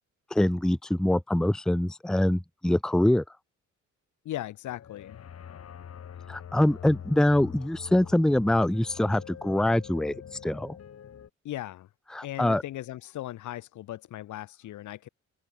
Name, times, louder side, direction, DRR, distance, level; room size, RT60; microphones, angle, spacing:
voice 1, 0.3-3.2 6.3-10.1 10.4-10.8 12.1-12.6, left 1 dB, ahead, 0.8 m, -24 dB
voice 2, 4.2-5.2 11.4-11.9 12.2-15.1, left 14 dB, 75° left, 1.4 m, -38 dB
sound 1, 4.7-11.3, left 8 dB, 55° left, 3.9 m, -44 dB
open air
cardioid pair, 90°, 30 cm